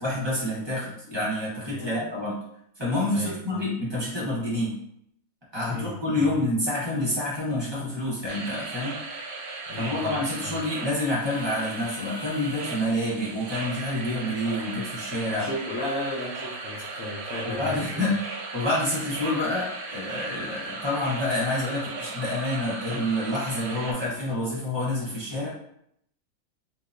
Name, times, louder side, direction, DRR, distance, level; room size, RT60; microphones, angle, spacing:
voice 1, 0.0-2.4 2.8-4.7 5.5-9.0 9.8-15.5 17.4-18.2 18.5-25.5, left 1 dB, 30° right, -7 dB, 0.5 m, -28 dB
voice 2, 1.7-2.1 3.1-3.6 5.7-6.3 9.7-10.6 15.3-18.0, left 1 dB, 70° left, -4 dB, 0.8 m, -35 dB
sound 1, 8.3-23.9, right 3 dB, 80° right, 1.3 m, -37 dB
4.6 x 2.1 x 2.5 m, 0.72 s
omnidirectional pair, 2.1 m